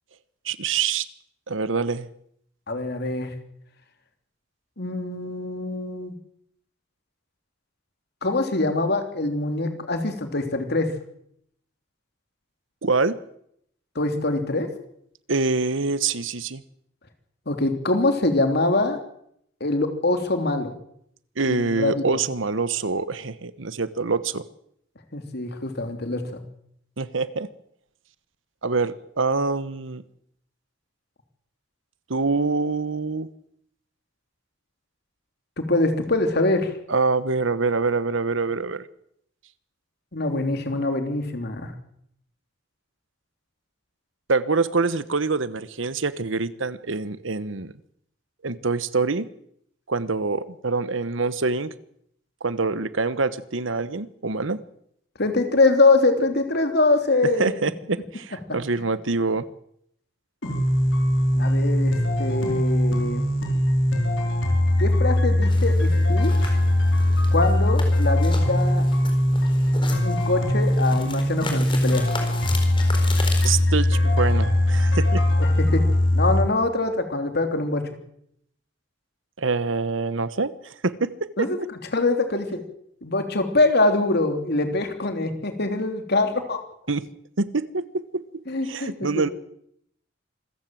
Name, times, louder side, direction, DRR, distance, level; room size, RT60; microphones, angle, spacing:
voice 1, 0.4-1.1 1.5-2.1 12.8-13.2 15.3-16.6 21.4-24.4 27.0-27.5 28.6-30.0 32.1-33.3 36.9-38.9 44.3-47.7 48.4-49.3 49.9-51.7 52.4-54.6 57.2-59.5 73.4-75.2 79.4-81.7 86.9-87.1 87.4-88.2 88.6-89.3, right 4 dB, 75° right, 15 dB, 1.1 m, -25 dB
voice 2, 2.7-3.3 4.8-6.1 8.2-10.9 13.9-14.7 17.5-19.0 19.6-20.7 21.4-22.0 25.1-26.4 35.6-36.8 40.1-41.7 55.2-57.5 61.3-63.2 64.8-66.6 67.3-68.9 70.0-72.1 75.4-75.8 76.1-77.9 81.4-81.6 81.9-82.6 83.0-86.6 88.5-89.1, left 2 dB, 55° left, 6 dB, 3.2 m, -24 dB
sound 1, 60.4-76.4, left 1 dB, 70° left, 4.9 m, -21 dB
sound 2, 65.5-73.6, left 3 dB, 25° left, 4.4 m, -37 dB
26.0 x 15.0 x 7.7 m, 0.71 s
head